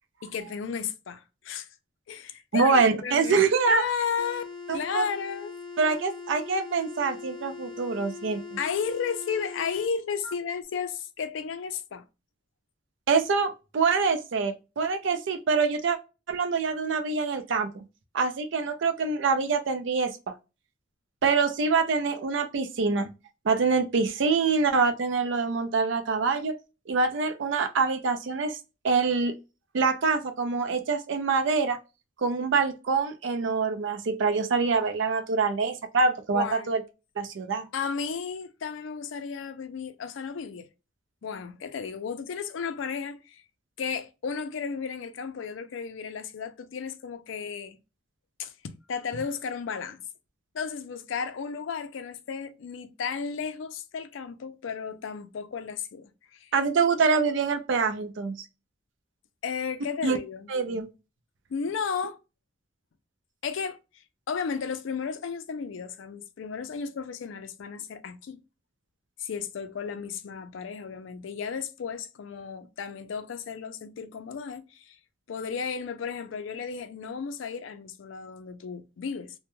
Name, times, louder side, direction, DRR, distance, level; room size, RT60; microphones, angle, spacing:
voice 1, 0.2-1.7 2.1-3.4 3.7-4.4 4.7-5.5 8.6-12.0 36.3-36.7 37.7-40.7 41.2-43.4 43.8-47.8 48.4-50.0 50.5-56.5 59.4-60.5 61.5-62.2 63.4-63.8 64.3-68.4 69.2-75.0 75.3-79.3, left 6 dB, 70° left, 0.4 m, -34 dB
voice 2, 2.5-3.8 4.7-5.0 5.8-8.4 13.1-16.0 16.3-17.8 18.1-20.1 21.2-23.1 23.4-26.6 26.9-28.6 28.8-29.3 29.7-31.8 32.2-36.8 37.2-37.7 56.5-58.4 60.0-60.2 60.5-60.9, right 4 dB, 65° right, 0.4 m, -25 dB
sound 1, 4.2-9.9, left 4 dB, 20° left, 0.7 m, -41 dB
2.2 x 2.1 x 2.9 m
head